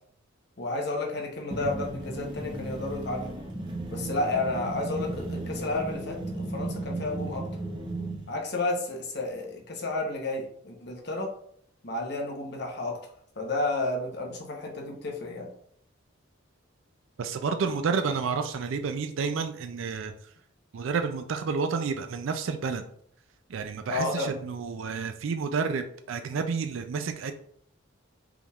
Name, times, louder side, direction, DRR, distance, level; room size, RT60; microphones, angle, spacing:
voice 1, 0.6-3.3 3.9-7.5 8.3-11.3 11.8-15.5 23.9-24.4, left 2 dB, 50° left, 1 dB, 0.9 m, -31 dB
sound 1, 1.5-8.3, right 2 dB, 20° right, 0.6 m, -35 dB
voice 2, 17.2-20.1 20.7-22.8 23.5-27.3, right 5 dB, 75° right, 7 dB, 0.4 m, -30 dB
5.0 x 3.4 x 2.4 m, 0.64 s
head